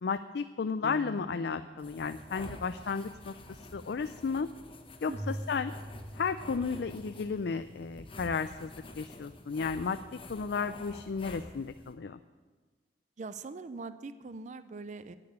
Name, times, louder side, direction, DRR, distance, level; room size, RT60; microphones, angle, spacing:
voice 1, 0.0-3.3 3.7-4.5 5.0-5.7 6.2-10.0 10.3-12.2, left 5 dB, 65° left, 11 dB, 0.4 m, -33 dB
Piano, 0.8-6.0 6.5-6.6 7.2-7.7, right 1 dB, 5° left, 1.0 m, -52 dB
sound 1, 1.8-11.9, left 1 dB, 30° left, 1.2 m, -49 dB
voice 2, 5.1-5.4 13.2-15.2, right 4 dB, 40° right, 13 dB, 0.5 m, -42 dB
Keyboard (musical), 5.1-8.6, right 1 dB, 80° right, 2.8 m, -44 dB
11.0 x 8.8 x 9.5 m, 1.4 s
head